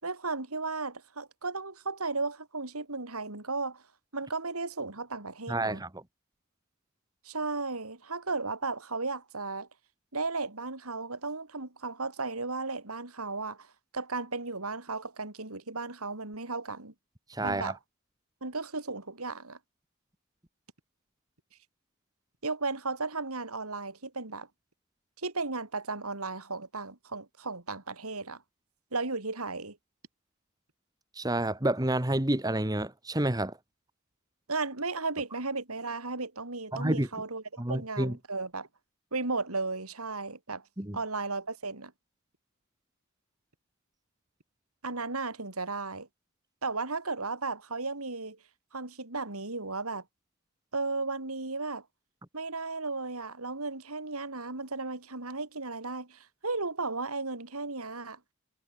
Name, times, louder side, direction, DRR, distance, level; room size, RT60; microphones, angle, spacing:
voice 1, 0.0-3.8 4.1-5.8 7.2-9.7 10.1-13.7 13.9-16.9 17.4-17.8 18.4-19.6 22.4-24.5 25.2-28.4 28.9-29.8 34.5-38.7 39.1-40.6 40.9-41.9 44.8-46.1 46.6-48.4 48.7-50.0 50.7-51.8 52.3-58.2, right 3 dB, 85° right, 3.8 m, -35 dB
voice 2, 5.5-6.0 17.3-17.7 31.1-33.6 36.7-37.1 37.6-38.2 40.8-41.0, right 1 dB, 15° right, 1.5 m, -29 dB
head